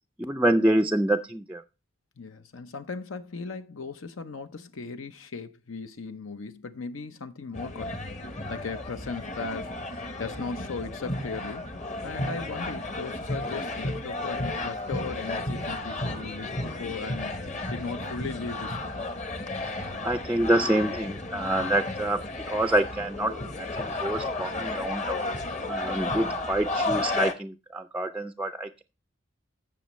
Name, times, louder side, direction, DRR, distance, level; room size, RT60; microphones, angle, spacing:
voice 1, 0.2-1.6 19.6-25.2 25.7-28.8, right 1 dB, 5° right, 0.4 m, -27 dB
voice 2, 2.2-9.7 10.2-11.7 12.0-19.0, left 4 dB, 75° left, 0.7 m, -37 dB
sound 1, 7.5-27.3, left 2 dB, 35° left, 1.0 m, -33 dB
15.5 x 6.1 x 3.1 m
head